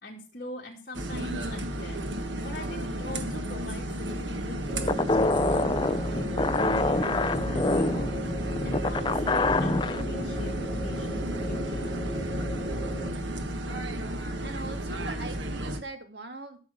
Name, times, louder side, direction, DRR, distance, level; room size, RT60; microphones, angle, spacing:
voice 1, 0.0-2.0 2.4-11.8, left 1 dB, 50° left, -4 dB, 2.4 m, -43 dB
sound 1, 0.9-15.8, right 1 dB, 85° right, 1.4 m, -33 dB
sound 2, 4.7-13.1, equal, 35° right, 3.2 m, -35 dB
sound 3, 4.9-10.0, left 2 dB, 25° left, 0.5 m, -26 dB
voice 2, 14.4-16.6, right 2 dB, 65° right, 6 dB, 2.2 m, -41 dB
12.5 x 7.0 x 5.0 m, 0.39 s
head